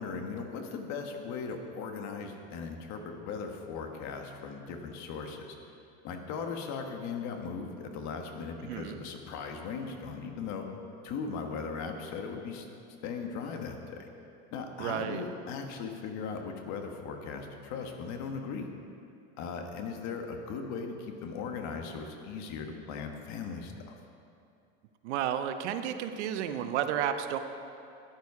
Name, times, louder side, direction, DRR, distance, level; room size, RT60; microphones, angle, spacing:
voice 1, 0.0-5.5 6.0-10.7 11.0-12.7 13.0-14.1 14.5-18.7 19.4-23.9, left 5 dB, 55° left, 4 dB, 1.5 m, -38 dB
voice 2, 8.7-9.0 14.8-15.2 25.0-27.4, right 10 dB, 85° right, 8 dB, 0.9 m, -32 dB
13.0 x 10.0 x 4.8 m, 2.6 s
supercardioid pair, 135°, 33 cm